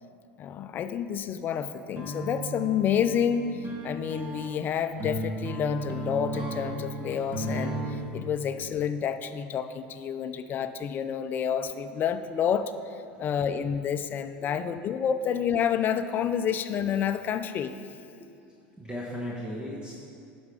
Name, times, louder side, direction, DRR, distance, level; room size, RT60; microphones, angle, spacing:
voice 1, 0.4-17.7, left 8 dB, 35° left, 10 dB, 0.5 m, -29 dB
sound 1, 2.0-8.1, right 1 dB, 30° right, 1.7 m, -35 dB
voice 2, 18.8-19.9, equal, 15° right, -4 dB, 1.2 m, -37 dB
11.0 x 6.2 x 4.8 m, 2.5 s
supercardioid pair, 120°, 6 cm